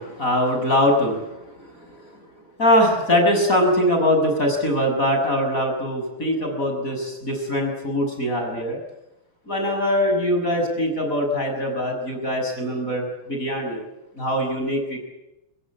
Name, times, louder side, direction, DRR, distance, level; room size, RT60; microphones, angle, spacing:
voice 1, 0.0-1.9 2.6-8.8 9.5-13.8 14.2-15.0, equal, 35° left, 3 dB, 7.3 m, -22 dB
25.0 x 21.5 x 9.7 m, 0.92 s
omnidirectional pair, 2.4 m